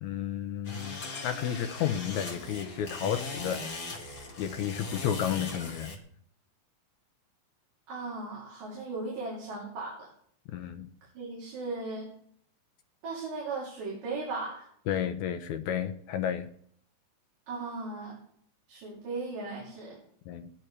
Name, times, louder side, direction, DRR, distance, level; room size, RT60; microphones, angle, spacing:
voice 1, 0.0-3.8 4.4-5.9 10.5-10.9 14.9-16.5 20.3-20.5, left 9 dB, 80° left, 1.8 m, -32 dB
sound 1, 0.6-6.0, left 3 dB, 35° left, 1.8 m, -39 dB
voice 2, 7.9-10.1 11.1-12.1 13.0-14.7 17.5-18.2 18.7-20.0, right 3 dB, 70° right, 4.9 m, -37 dB
19.5 x 13.5 x 3.3 m
omnidirectional pair, 4.0 m